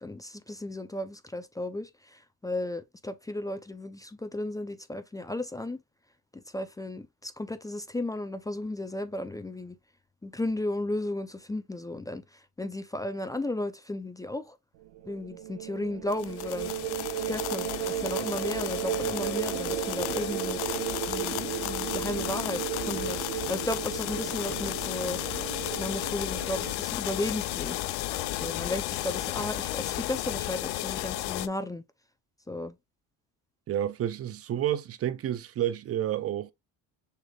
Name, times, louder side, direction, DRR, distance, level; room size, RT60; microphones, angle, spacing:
voice 1, 0.0-5.8 6.3-9.8 10.2-12.2 12.6-14.6 15.1-16.7 17.3-20.8 21.0-22.6 22.9-25.2 25.8-27.8 28.4-31.8 32.5-32.8, left 2 dB, 10° left, 0.4 m, -34 dB
sound 1, 14.8-26.7, right 12 dB, 85° right, 1.0 m, -34 dB
sound 2, 16.1-31.5, left 16 dB, 80° left, 0.6 m, -33 dB
voice 2, 33.7-36.5, right 11 dB, 40° right, 0.6 m, -30 dB
6.5 x 3.4 x 2.3 m
cardioid pair, 125°, 38 cm